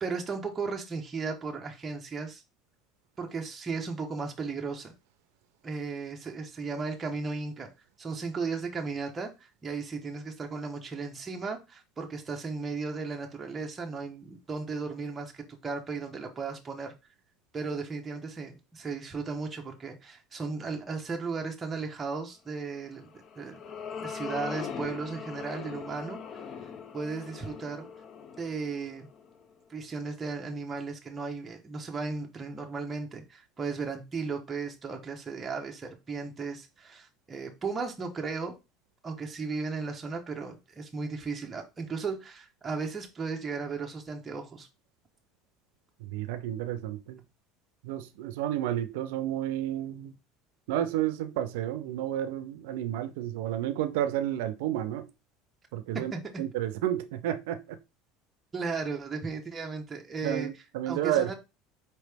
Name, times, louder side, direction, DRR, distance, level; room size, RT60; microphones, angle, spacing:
voice 1, 0.0-2.4 3.2-4.9 5.6-7.7 8.0-16.9 17.5-23.6 24.0-26.4 26.9-27.9 28.4-29.1 29.7-38.6 39.0-44.7 56.1-56.2 58.5-60.5 60.9-61.3, right 4 dB, 15° right, 0.6 m, -35 dB
sound 1, 23.0-29.5, left 6 dB, 30° left, 0.4 m, -41 dB
voice 2, 46.0-47.2 47.8-50.1 50.7-55.1 55.7-56.1 56.4-57.8 60.2-61.3, right 12 dB, 80° right, 0.5 m, -31 dB
4.5 x 3.0 x 3.3 m
cardioid pair, 180°, 0 cm